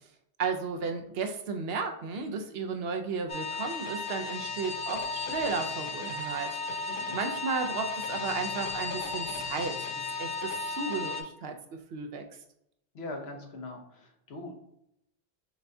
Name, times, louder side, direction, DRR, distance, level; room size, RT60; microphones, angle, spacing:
voice 1, 0.4-9.7 10.2-12.2, right 4 dB, 75° right, 5 dB, 0.8 m, -34 dB
sound 1, 3.3-11.2, left 3 dB, 60° left, 0.7 m, -35 dB
voice 2, 6.9-7.2 12.9-14.5, left 2 dB, 80° left, 2 dB, 1.1 m, -41 dB
6.0 x 2.2 x 2.6 m, 0.77 s
omnidirectional pair, 1.0 m